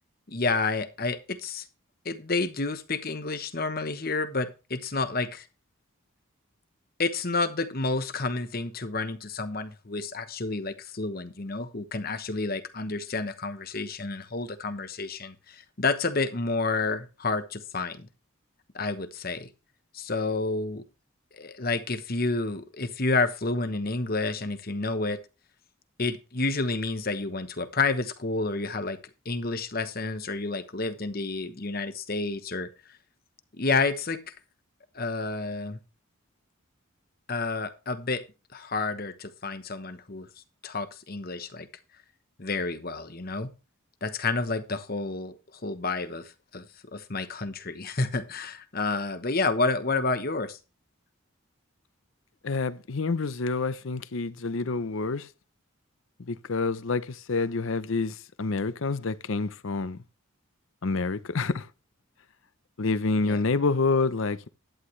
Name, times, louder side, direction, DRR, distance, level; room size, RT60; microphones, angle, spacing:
voice 1, 0.3-1.7 2.0-5.5 7.0-18.1 18.7-19.5 19.9-20.8 21.3-25.2 26.0-29.0 29.2-32.7 33.5-34.3 34.9-35.8 37.3-38.2 38.5-40.3 40.6-41.7 42.4-43.5 44.0-45.4 45.6-50.6 63.2-63.4, left 3 dB, 45° left, 1.0 m, -30 dB
voice 2, 52.4-55.3 56.3-60.0 60.8-61.7 62.8-64.5, left 3 dB, 65° left, 0.7 m, -28 dB
11.0 x 9.5 x 3.2 m
head